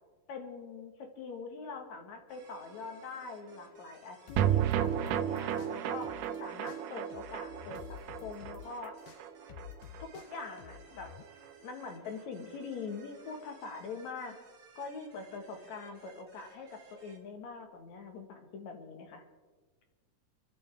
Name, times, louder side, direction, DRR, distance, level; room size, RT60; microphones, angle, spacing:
voice 1, 0.3-9.0 10.0-11.2 11.6-14.4 14.8-19.2, left 4 dB, 60° left, 4 dB, 2.7 m, -43 dB
sound 1, 2.3-17.2, right 5 dB, 55° right, 3.4 m, -58 dB
sound 2, 4.3-6.4 6.7-11.2, left 10 dB, 85° left, 2.3 m, -50 dB
sound 3, 4.4-10.8 11.1-11.2 11.4-11.5, right 10 dB, 75° right, 2.2 m, -33 dB
29.0 x 12.5 x 3.5 m, 1.4 s
omnidirectional pair, 3.8 m